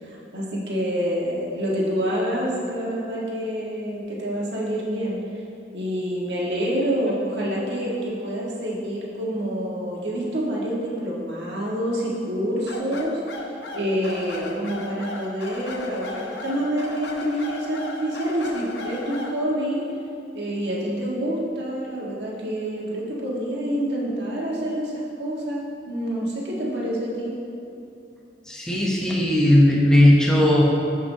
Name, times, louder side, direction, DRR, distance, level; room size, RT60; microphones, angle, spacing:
voice 1, 0.0-5.2 5.7-13.4 13.7-19.8 20.3-27.3, equal, 75° right, -5 dB, 1.5 m, -27 dB
sound 1, 12.7-19.4, left 2 dB, 75° left, 0.8 m, -35 dB
voice 2, 28.5-30.6, left 1 dB, 5° left, -4 dB, 0.8 m, -17 dB
12.0 x 5.6 x 2.7 m, 2.7 s
head